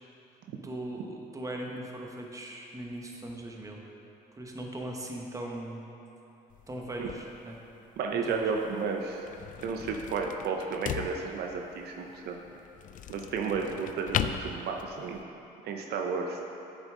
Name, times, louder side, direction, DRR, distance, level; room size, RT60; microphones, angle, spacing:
voice 1, 0.6-3.8 4.3-5.9 6.7-7.6 8.3-8.4, right 1 dB, 20° right, 0 dB, 1.1 m, -39 dB
sound 1, 6.5-15.2, left 9 dB, 50° left, 0.4 m, -39 dB
voice 2, 8.0-9.2 9.6-12.4 13.1-15.2 15.6-16.4, right 5 dB, 65° right, 2 dB, 0.7 m, -32 dB
9.2 x 6.8 x 3.7 m, 2.9 s
cardioid pair, 100°, 18 cm